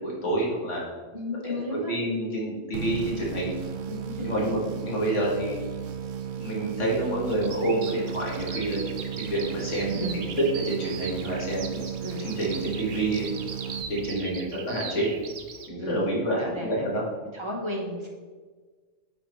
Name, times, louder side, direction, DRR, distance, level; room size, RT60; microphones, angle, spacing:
voice 1, 0.0-0.8 1.4-1.5 1.9-3.6 4.2-5.6 6.4-8.8 9.2-10.3 10.5-11.8 12.2-13.3 13.9-15.1 15.7-17.0, right 1 dB, 75° left, -4 dB, 2.0 m, -28 dB
voice 2, 1.1-2.0 3.9-4.6 9.9-10.3 12.0-12.3 15.8-16.1 16.4-16.9 17.3-18.1, left 1 dB, 25° right, -1 dB, 1.1 m, -34 dB
sound 1, 2.7-14.5, right 8 dB, 80° right, 0.9 m, -35 dB
Bird vocalization bird call bird song, 7.3-15.7, right 6 dB, 55° right, 0.7 m, -40 dB
8.5 x 4.3 x 3.2 m, 1.4 s
omnidirectional pair, 1.3 m